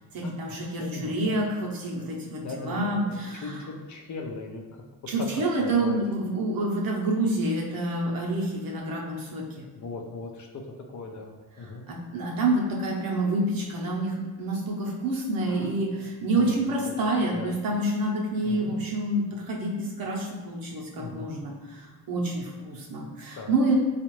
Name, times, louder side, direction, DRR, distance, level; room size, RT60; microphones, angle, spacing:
voice 1, 0.1-3.6 5.1-9.7 11.9-23.7, right 2 dB, 60° right, -2 dB, 0.9 m, -28 dB
voice 2, 0.8-1.4 2.4-4.8 5.3-6.0 9.7-10.6 10.9-11.8 15.5-15.7 16.3-16.6 16.8-17.5 18.4-18.8 20.9-21.3 23.3-23.5, left 3 dB, 45° left, 1 dB, 0.6 m, -39 dB
3.9 x 2.5 x 3.1 m, 1.2 s
cardioid pair, 85°, 40 cm